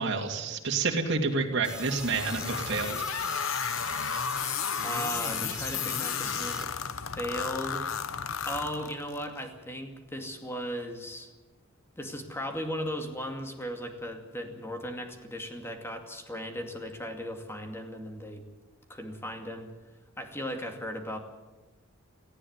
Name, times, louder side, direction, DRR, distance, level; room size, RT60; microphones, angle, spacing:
voice 1, 0.0-3.0, right 4 dB, 55° right, 2 dB, 2.5 m, -29 dB
sound 1, 1.6-6.6, right 2 dB, 5° right, 1.5 m, -41 dB
sound 2, 1.7-9.2, left 7 dB, 70° left, 0.9 m, -33 dB
voice 2, 4.8-6.7 7.1-7.8 8.5-11.3 12.0-18.4 18.9-19.7 20.2-21.2, equal, 10° left, 4 dB, 2.3 m, -36 dB
18.5 x 15.0 x 9.6 m, 1.1 s
head